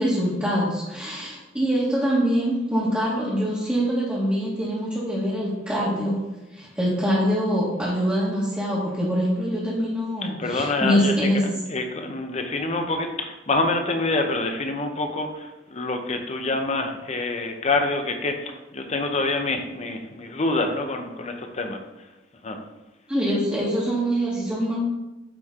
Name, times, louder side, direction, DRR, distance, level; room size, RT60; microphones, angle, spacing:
voice 1, 0.0-6.2 6.5-11.4 23.1-24.8, equal, 10° right, -9 dB, 1.4 m, -24 dB
voice 2, 10.2-22.1 22.4-22.6, left 2 dB, 40° left, 5 dB, 0.8 m, -27 dB
9.6 x 3.3 x 3.6 m, 1.0 s
head